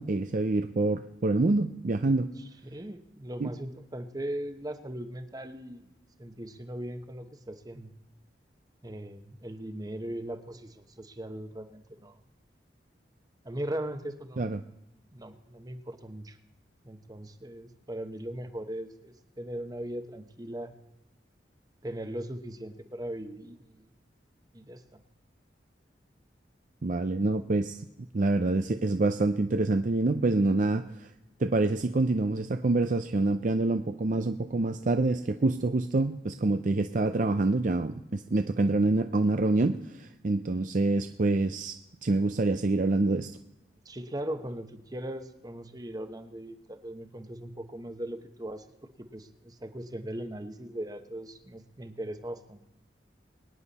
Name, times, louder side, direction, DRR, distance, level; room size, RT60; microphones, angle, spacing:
voice 1, 0.0-2.3 3.4-3.5 14.4-14.6 26.8-27.9 28.1-31.1 31.4-41.8 42.0-43.3, right 2 dB, 45° right, 8 dB, 0.5 m, -26 dB
voice 2, 2.4-5.9 6.2-7.9 8.8-12.2 13.4-14.5 15.1-16.4 16.8-20.7 21.8-23.9 24.5-25.0 43.8-52.6, right 1 dB, 20° right, 9 dB, 1.0 m, -39 dB
23.0 x 10.0 x 4.2 m, 0.91 s
head